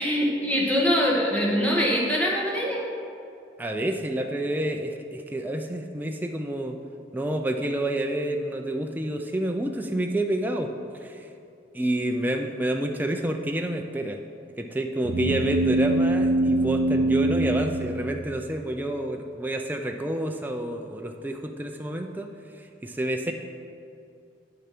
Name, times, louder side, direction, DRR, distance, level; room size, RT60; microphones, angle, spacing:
voice 1, 0.0-2.9, equal, 10° left, -4 dB, 1.6 m, -23 dB
voice 2, 3.6-6.8 7.1-10.7 11.0-11.3 11.7-14.2 14.6-22.3 22.6-23.3, right 1 dB, 10° right, 3 dB, 0.4 m, -28 dB
sound 1, 15.0-18.7, right 1 dB, 70° right, 0.6 m, -24 dB
8.7 x 6.7 x 6.0 m, 2.6 s
head